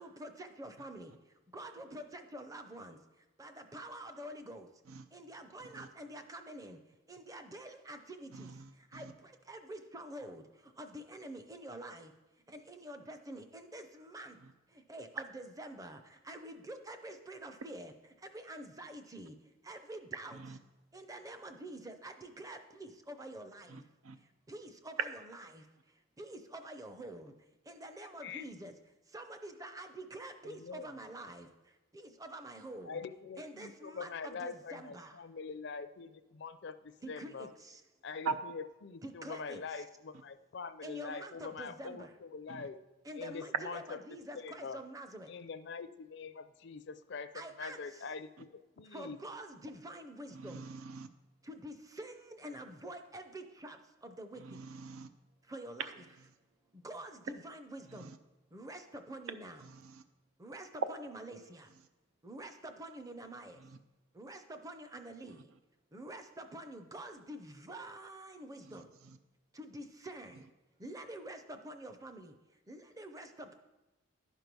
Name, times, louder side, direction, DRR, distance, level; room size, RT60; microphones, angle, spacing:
voice 1, 0.0-1.1 1.5-3.0 3.4-4.7 5.1-6.8 7.1-8.5 8.9-12.1 12.5-14.4 14.7-17.9 18.2-19.4 19.6-20.4 20.9-23.8 24.5-25.7 26.2-27.3 27.7-28.7 29.1-31.5 31.9-33.0 33.4-35.2 37.0-37.8 39.0-39.8 40.8-42.1 43.0-45.3 47.3-48.1 48.9-50.6 51.4-54.6 55.5-55.9 56.7-58.1 58.5-59.6 60.4-61.7 62.2-63.6 64.1-65.5 65.9-68.9 69.5-70.5 70.8-72.4 72.7-73.5, right 1 dB, 15° right, 0.5 m, -47 dB
voice 2, 8.3-9.1 14.4-14.5 20.3-20.6 23.7-24.2 38.2-38.4 42.5-42.7 50.3-51.1 54.4-55.1 57.9-58.2 59.6-60.0 63.6-63.8 68.6-69.2, right 4 dB, 85° right, 0.5 m, -44 dB
voice 3, 30.4-30.9 32.8-37.5 38.0-42.8 43.2-43.8 44.3-44.8 45.3-49.2, left 5 dB, 55° left, 0.4 m, -44 dB
12.0 x 4.6 x 5.3 m
head